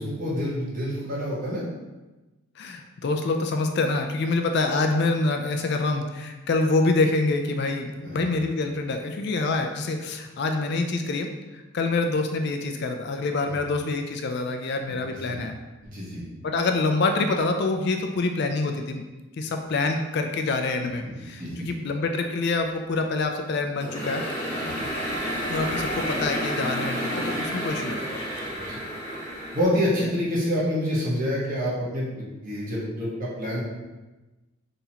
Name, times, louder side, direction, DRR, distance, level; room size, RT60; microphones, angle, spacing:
voice 1, 0.0-1.6 8.0-8.2 14.9-15.3 15.8-16.2 21.0-21.7 24.6-24.8 28.5-28.8 29.5-33.6, equal, 40° right, -6 dB, 1.3 m, -28 dB
voice 2, 2.6-15.6 16.4-19.0 19.4-24.2 25.5-28.2 30.0-30.1, left 3 dB, 50° left, 4 dB, 0.3 m, -26 dB
sound 1, 23.8-29.6, equal, 10° left, 1.0 m, -30 dB
4.1 x 3.9 x 2.9 m, 1.1 s
head